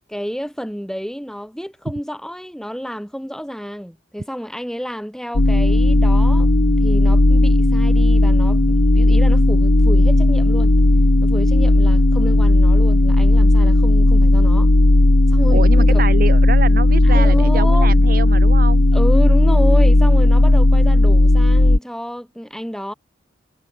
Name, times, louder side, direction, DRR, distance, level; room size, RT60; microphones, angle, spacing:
voice 1, 0.1-6.5 6.8-10.7 11.2-14.7 15.3-16.0 17.0-18.0 18.9-22.9, equal, 5° left, 7.1 m, -29 dB
sound 1, 5.3-21.8, left 1 dB, 60° left, 1.3 m, -14 dB
voice 2, 15.5-18.8, right 3 dB, 45° right, 1.2 m, -26 dB
head